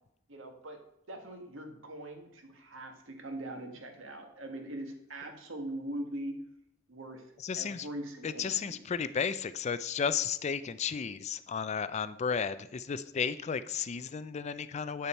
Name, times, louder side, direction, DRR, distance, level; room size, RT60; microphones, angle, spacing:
voice 1, 0.3-0.8 1.1-6.4 6.9-8.8, right 1 dB, 70° right, 4 dB, 1.6 m, -42 dB
voice 2, 7.4-7.9 8.2-15.1, left 6 dB, 35° left, 14 dB, 0.3 m, -33 dB
8.7 x 6.9 x 4.4 m, 0.75 s
head